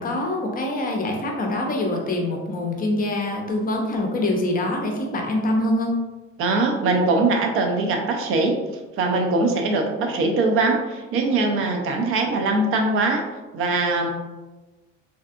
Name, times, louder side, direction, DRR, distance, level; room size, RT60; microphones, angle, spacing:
voice 1, 0.0-6.0, left 1 dB, 25° left, 1 dB, 0.6 m, -24 dB
voice 2, 6.4-8.5 9.0-13.2 13.5-14.1, right 3 dB, 35° right, 3 dB, 0.5 m, -21 dB
3.3 x 2.5 x 2.4 m, 1.2 s
figure-of-eight pair, 60°, 38 cm